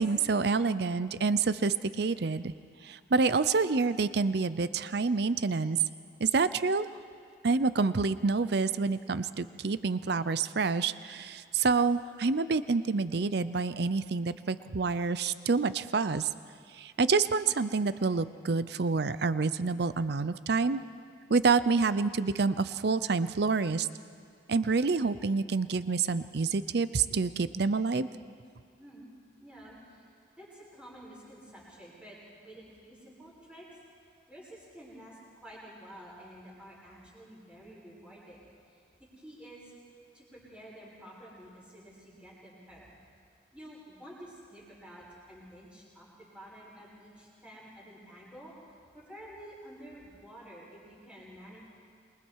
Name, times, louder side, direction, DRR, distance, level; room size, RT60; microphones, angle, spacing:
voice 1, 0.0-2.5 2.8-5.8 6.2-6.9 7.4-16.3 16.8-20.8 21.3-23.9 24.5-28.1, right 4 dB, 55° right, 14 dB, 0.6 m, -28 dB
voice 2, 28.8-29.1 29.4-30.1 30.4-33.8 34.3-38.4 38.7-38.8 39.2-39.7 40.1-42.9 43.5-48.5 48.9-51.6, equal, 5° right, -7 dB, 7.1 m, -50 dB
27.5 x 22.5 x 4.7 m, 2.2 s
head